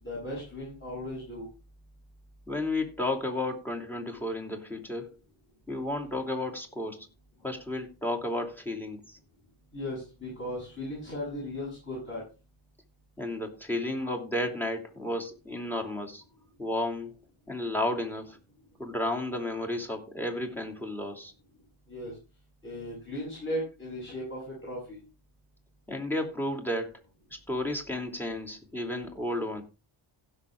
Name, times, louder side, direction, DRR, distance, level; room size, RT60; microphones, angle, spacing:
voice 1, 0.0-1.5 9.7-12.2 21.9-22.2 22.6-25.0, left 1 dB, 25° left, -7 dB, 7.2 m, -37 dB
voice 2, 2.5-5.2 5.7-7.1 7.4-9.2 13.2-16.2 16.6-17.1 17.5-18.4 18.8-21.3 25.9-26.9 27.3-29.6, left 1 dB, 5° left, 4 dB, 2.7 m, -32 dB
16.0 x 6.5 x 3.5 m, 0.31 s
wide cardioid pair, 105°, 50 cm